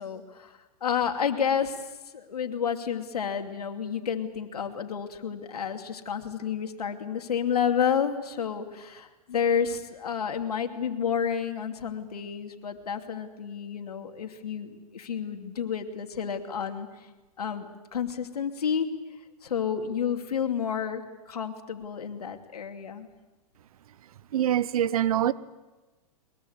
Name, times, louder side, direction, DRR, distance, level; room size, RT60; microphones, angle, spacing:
voice 1, 0.0-1.8 2.1-16.9 17.4-18.9 19.4-21.0 21.3-23.1, left 7 dB, 90° left, 5 dB, 2.7 m, -30 dB
voice 2, 24.3-25.3, right 11 dB, 70° right, 17 dB, 1.0 m, -24 dB
22.5 x 22.5 x 8.1 m, 1.1 s
hypercardioid pair, 135°, 19 cm